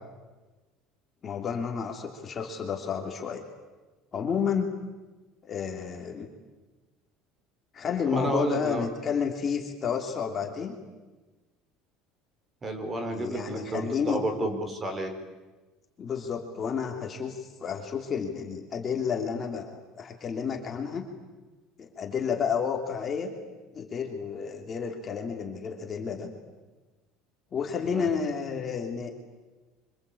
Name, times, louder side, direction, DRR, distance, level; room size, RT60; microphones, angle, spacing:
voice 1, 1.2-3.4 4.1-4.7 5.5-6.3 7.7-10.7 13.1-14.2 16.0-21.1 21.8-23.3 23.7-26.3 27.5-29.1, left 6 dB, 25° left, 3 dB, 3.1 m, -31 dB
voice 2, 8.0-8.8 12.6-15.1 27.9-28.1, right 1 dB, 20° right, 6 dB, 4.3 m, -31 dB
26.5 x 25.5 x 8.6 m, 1.2 s
cardioid pair, 155°, 0 cm